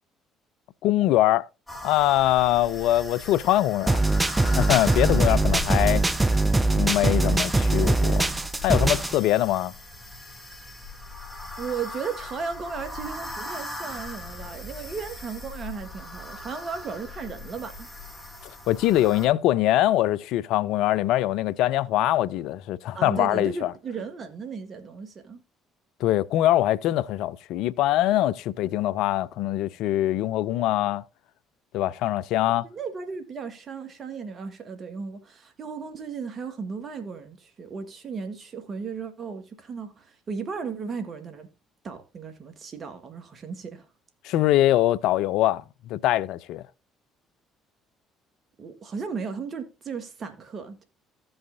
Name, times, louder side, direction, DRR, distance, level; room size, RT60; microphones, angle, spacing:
voice 1, 0.8-1.5 1.8-4.0 4.5-6.0 6.7-8.3 8.6-9.7 18.7-23.7 26.0-31.0 31.7-32.7 44.2-45.6 45.9-46.6, left 14 dB, 70° left, 0.4 m, -23 dB
sound 1, 1.7-19.3, left 3 dB, 15° left, 2.5 m, -38 dB
sound 2, 3.9-9.2, right 2 dB, 15° right, 0.7 m, -22 dB
voice 2, 11.6-17.9 22.9-25.4 32.6-41.5 41.8-43.9 48.6-50.9, right 5 dB, 45° right, 1.7 m, -35 dB
15.0 x 5.5 x 2.6 m
hypercardioid pair, 55°, 0 cm